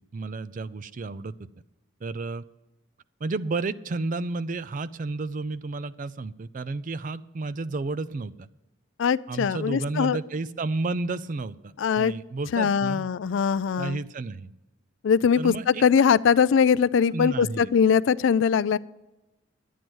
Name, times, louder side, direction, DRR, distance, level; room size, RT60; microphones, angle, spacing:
voice 1, 0.1-1.3 2.0-2.4 3.2-8.5 9.3-13.1 13.8-14.5 15.4-15.8 17.1-17.7, right 3 dB, 40° right, 16 dB, 0.4 m, -31 dB
voice 2, 9.0-10.2 11.8-12.1 12.5-14.0 15.0-18.8, left 6 dB, 65° left, 18 dB, 0.3 m, -21 dB
12.0 x 9.2 x 6.2 m, 1.0 s
head